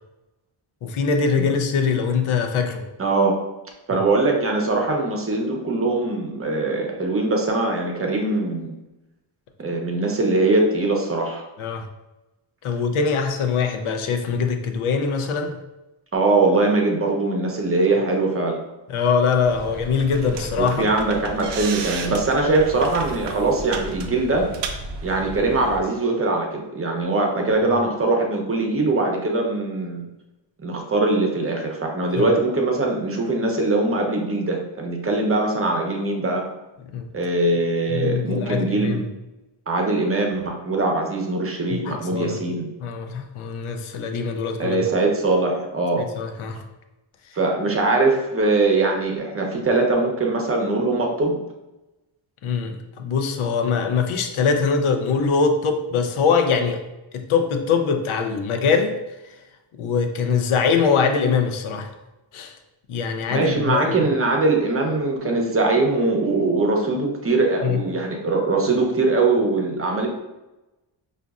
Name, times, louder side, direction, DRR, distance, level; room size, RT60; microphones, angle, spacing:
voice 1, 0.8-2.8 11.6-11.8 12.6-15.6 18.9-20.9 32.2-32.3 36.9-37.1 37.9-39.1 41.7-42.4 42.8-44.8 46.0-46.6 52.4-56.8 57.1-58.9 59.8-61.9 62.3-62.5 62.9-64.1 67.6-67.8, left 5 dB, 80° left, 5 dB, 0.6 m, -22 dB
voice 2, 3.0-3.4 3.9-8.8 9.6-11.4 16.1-18.6 20.6-24.5 25.0-30.0 30.6-36.4 37.1-39.0 39.7-42.7 44.6-46.1 47.3-51.3 63.3-70.1, right 2 dB, 30° right, 1 dB, 0.7 m, -22 dB
sound 1, 19.4-25.8, right 4 dB, 60° right, 0.5 m, -33 dB
5.1 x 2.5 x 2.4 m, 1.0 s
cardioid pair, 95°, 48 cm